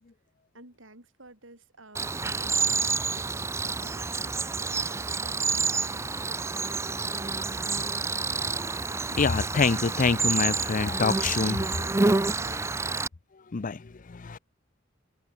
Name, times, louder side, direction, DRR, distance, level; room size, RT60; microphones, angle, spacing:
voice 1, 0.5-3.3 3.6-8.7 12.4-13.1, right 2 dB, 80° right, 7.6 m, -52 dB
Cricket, 1.9-13.1, right 4 dB, 15° right, 0.5 m, -28 dB
voice 2, 9.2-11.9 13.5-14.4, left 4 dB, 45° left, 0.6 m, -26 dB
head